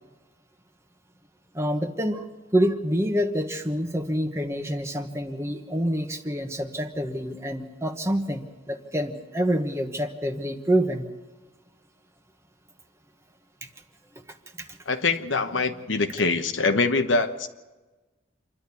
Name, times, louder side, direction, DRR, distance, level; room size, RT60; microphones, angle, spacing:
voice 1, 1.5-2.2 2.5-11.0 14.6-14.8, equal, 15° right, 5 dB, 1.2 m, -27 dB
voice 2, 14.9-17.5, left 3 dB, 90° left, 7 dB, 1.2 m, -24 dB
27.0 x 11.5 x 8.5 m, 1.2 s
head